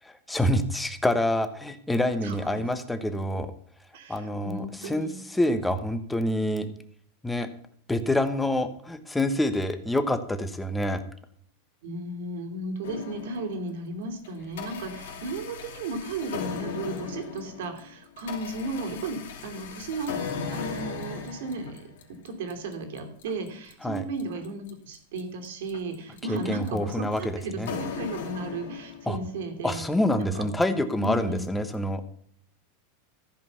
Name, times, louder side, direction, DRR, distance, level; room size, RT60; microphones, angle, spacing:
voice 1, 0.0-3.5 4.1-6.7 7.2-7.5 7.9-11.0 23.8-24.0 26.3-27.7 29.1-29.2 29.6-32.0, left 1 dB, 5° left, 9 dB, 1.0 m, -27 dB
voice 2, 2.2-2.7 3.9-5.2 11.8-20.1 20.5-29.8 30.1-30.4 31.0-31.4, right 2 dB, 75° right, 6 dB, 2.8 m, -35 dB
sound 1, 12.8-13.8 14.2-29.3, left 6 dB, 85° left, 2.9 m, -38 dB
14.0 x 5.2 x 7.0 m, 0.63 s
supercardioid pair, 155°, 0 cm